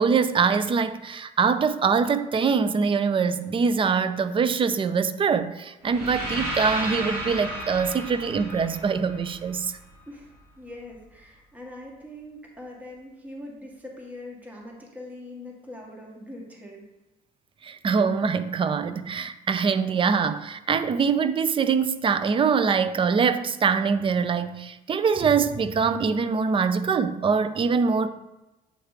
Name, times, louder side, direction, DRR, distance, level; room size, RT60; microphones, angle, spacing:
voice 1, 0.0-9.8 17.6-28.1, right 5 dB, 30° right, 0.5 m, -23 dB
sound 1, 5.8-9.9, right 1 dB, 75° right, 2.4 m, -33 dB
voice 2, 10.1-16.8, left 1 dB, 10° right, 1.5 m, -42 dB
7.7 x 3.2 x 4.8 m
cardioid pair, 110°, 17 cm